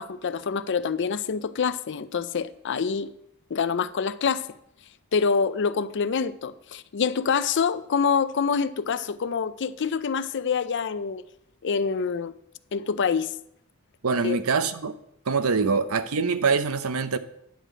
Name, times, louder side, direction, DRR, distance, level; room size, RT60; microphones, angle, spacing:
voice 1, 0.0-3.1 3.5-4.5 5.1-11.2 11.6-12.3 12.7-13.3 14.2-14.4 15.6-15.7, left 6 dB, 55° left, 0.5 m, -26 dB
voice 2, 14.0-14.9 15.3-17.2, right 5 dB, 75° right, 0.7 m, -24 dB
10.0 x 5.0 x 7.5 m
head